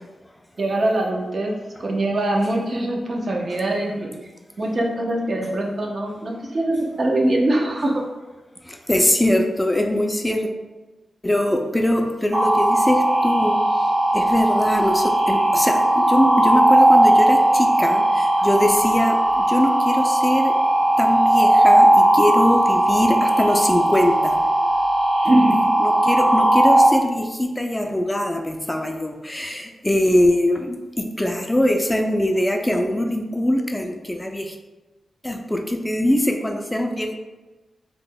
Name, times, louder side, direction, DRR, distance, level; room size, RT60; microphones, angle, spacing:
voice 1, 0.6-1.5 1.8-4.1 4.6-8.0 25.2-25.6, right 1 dB, 45° right, 0 dB, 0.5 m, -22 dB
voice 2, 8.7-10.5 11.2-20.5 21.0-24.4 25.2-25.4 25.8-34.6 35.2-37.2, left 1 dB, 10° left, 4 dB, 0.3 m, -22 dB
sound 1, 12.3-26.9, right 1 dB, 80° right, 0.9 m, -17 dB
3.0 x 2.0 x 3.6 m, 1.2 s
wide cardioid pair, 125°, 0 cm